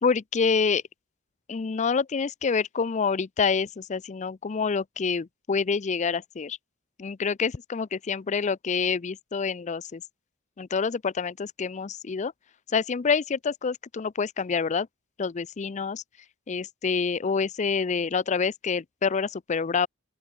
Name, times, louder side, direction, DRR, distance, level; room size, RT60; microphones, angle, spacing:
voice 1, 0.0-0.8 1.5-6.6 7.0-10.0 10.6-12.3 12.7-14.9 15.2-16.0 16.5-19.9, left 5 dB, 35° left, 0.4 m, -27 dB
open air
head